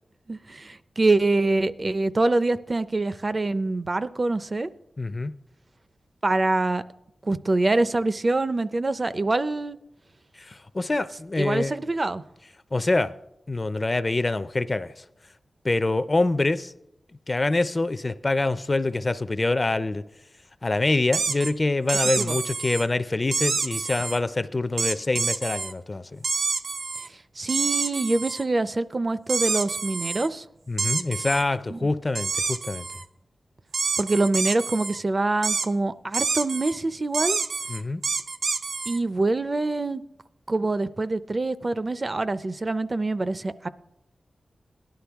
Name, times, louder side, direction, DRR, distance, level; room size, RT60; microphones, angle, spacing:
voice 1, 0.3-4.7 6.2-6.8 7.2-9.8 11.4-12.2 22.2-22.4 27.4-30.4 31.7-31.8 34.0-37.4 38.9-40.0 40.5-43.7, right 2 dB, 35° right, 0.4 m, -25 dB
voice 2, 5.0-5.3 10.4-11.7 12.7-13.1 13.5-14.9 15.6-16.7 17.3-20.0 20.6-26.2 30.7-32.9 37.7-38.0, left 2 dB, 30° left, 0.4 m, -25 dB
sound 1, 21.1-21.5 21.9-22.8 23.3-24.2 24.8-25.7 26.2-27.1 27.5-28.4 29.3-30.3 30.8-31.4 32.1-33.0 33.7-35.0 35.4-35.7 36.1-36.8 37.1-39.0, right 4 dB, 80° right, 0.6 m, -27 dB
18.0 x 11.5 x 3.5 m
wide cardioid pair, 115°, 0 cm